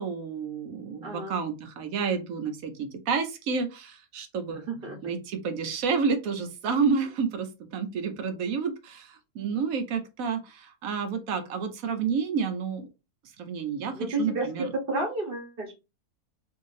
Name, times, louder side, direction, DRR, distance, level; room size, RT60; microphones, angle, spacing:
voice 1, 0.0-4.6 5.0-12.9 13.4-14.7, right 5 dB, 70° right, 8 dB, 1.1 m, -30 dB
voice 2, 1.0-1.4 4.5-5.0 13.9-15.7, right 2 dB, 40° right, 2 dB, 1.1 m, -31 dB
3.4 x 2.7 x 3.1 m, 0.27 s
omnidirectional pair, 1.6 m